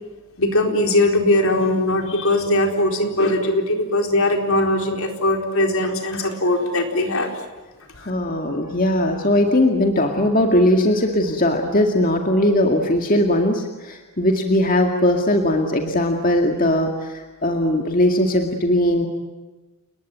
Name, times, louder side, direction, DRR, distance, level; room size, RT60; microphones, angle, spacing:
voice 1, 0.4-7.3 7.9-8.1, left 1 dB, 70° left, 3 dB, 4.3 m, -20 dB
voice 2, 8.0-19.1, left 1 dB, 40° left, 3 dB, 2.1 m, -19 dB
29.5 x 20.5 x 9.3 m, 1.2 s
head